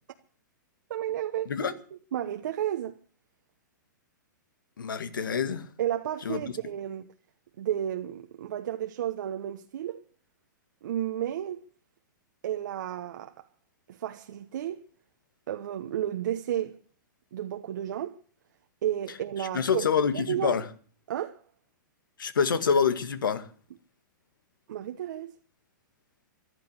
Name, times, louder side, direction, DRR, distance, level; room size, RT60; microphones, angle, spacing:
voice 1, 0.9-1.7 2.1-3.0 5.8-7.1 7.6-10.0 10.8-11.6 12.4-13.5 13.9-14.8 15.5-16.8 17.3-18.2 18.8-19.9 20.1-20.6 21.1-21.4 24.7-25.3, right 11 dB, 70° right, 1.1 m, -32 dB
voice 2, 4.8-5.6 6.3-6.4 19.4-20.7 22.2-23.5, left 6 dB, 85° left, 2.0 m, -26 dB
14.5 x 12.0 x 8.2 m
hypercardioid pair, 135°, 11 cm